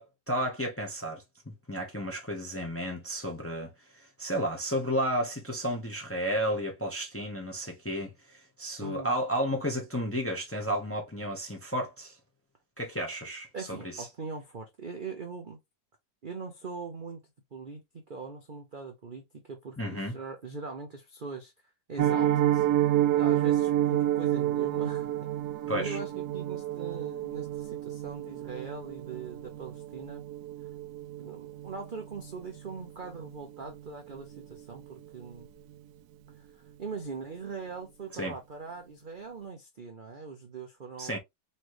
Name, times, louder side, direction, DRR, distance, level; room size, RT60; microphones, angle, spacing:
voice 1, 0.0-12.2 12.8-14.1 19.8-20.2 25.7-26.0 38.1-38.3 41.0-41.2, equal, 10° left, 0.8 m, -32 dB
voice 2, 8.8-9.1 13.5-15.6 16.2-17.2 17.5-17.8 18.1-21.5 21.9-25.1 25.7-30.2 31.2-35.5 36.4-41.2, right 4 dB, 45° right, 0.6 m, -41 dB
Piano, 22.0-32.9 33.1-33.4 33.7-33.8 34.2-34.4 34.7-34.8, right 12 dB, 70° right, 1.1 m, -29 dB
4.2 x 3.2 x 3.1 m
omnidirectional pair, 1.9 m